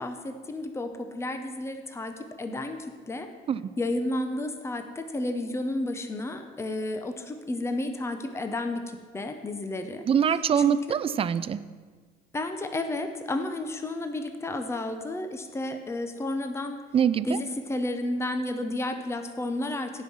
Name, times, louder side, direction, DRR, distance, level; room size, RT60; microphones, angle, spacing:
voice 1, 0.0-2.8 3.1-3.3 3.8-10.1 10.6-11.0 12.3-16.8 17.2-20.0, left 2 dB, 15° left, 7 dB, 0.9 m, -32 dB
voice 2, 10.1-11.6 16.9-17.4, right 8 dB, 35° right, 15 dB, 0.5 m, -24 dB
16.5 x 5.5 x 6.4 m, 1.5 s
cardioid pair, 110°, 17 cm